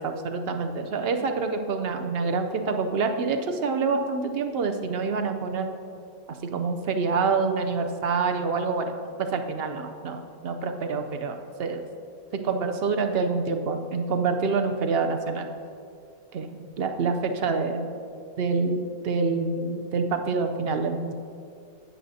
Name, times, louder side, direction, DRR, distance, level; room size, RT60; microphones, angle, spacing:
voice 1, 0.0-5.7 6.4-11.8 12.3-15.5 16.3-17.9 18.4-21.1, right 4 dB, 60° right, 6 dB, 0.7 m, -27 dB
17.5 x 6.6 x 2.7 m, 2.4 s
omnidirectional pair, 1.6 m